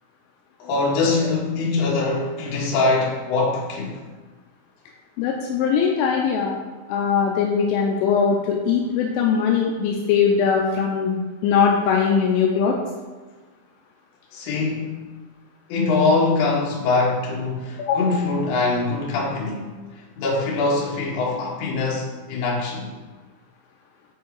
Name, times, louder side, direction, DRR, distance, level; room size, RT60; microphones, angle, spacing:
voice 1, 0.6-4.0 14.3-15.0 15.7-19.7 20.2-22.9, left 3 dB, 65° left, -3 dB, 3.2 m, -23 dB
voice 2, 5.2-6.6 6.9-11.2 11.4-12.8 17.8-18.1, left 6 dB, 85° left, 0 dB, 3.1 m, -21 dB
9.4 x 4.5 x 4.6 m, 1.3 s
omnidirectional pair, 5.7 m